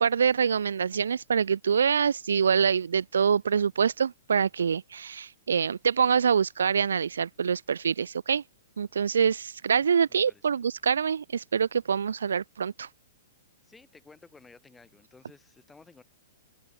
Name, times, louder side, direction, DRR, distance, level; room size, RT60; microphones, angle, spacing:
voice 1, 0.0-8.4 8.8-12.9, right 7 dB, 85° right, 0.5 m, -25 dB
voice 2, 9.8-10.4 13.6-16.0, left 4 dB, 10° left, 5.9 m, -55 dB
open air
hypercardioid pair, 135°, 0 cm